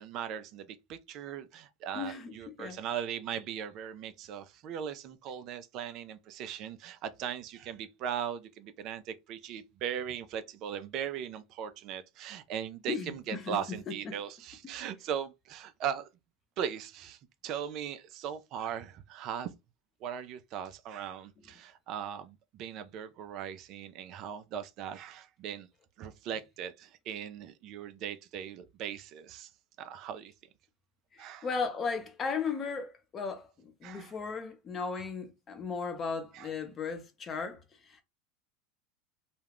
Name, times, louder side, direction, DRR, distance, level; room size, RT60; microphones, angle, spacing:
voice 1, 0.0-16.1 16.6-19.5 20.0-25.7 26.0-29.5 29.8-30.3 31.2-31.5 33.8-34.1 36.3-36.5, right 9 dB, 50° right, 0.4 m, -39 dB
voice 2, 1.9-2.8 12.9-14.2 14.6-14.7 31.1-38.0, left 5 dB, 35° left, 0.7 m, -36 dB
2.3 x 2.1 x 3.4 m
hypercardioid pair, 85°, 0 cm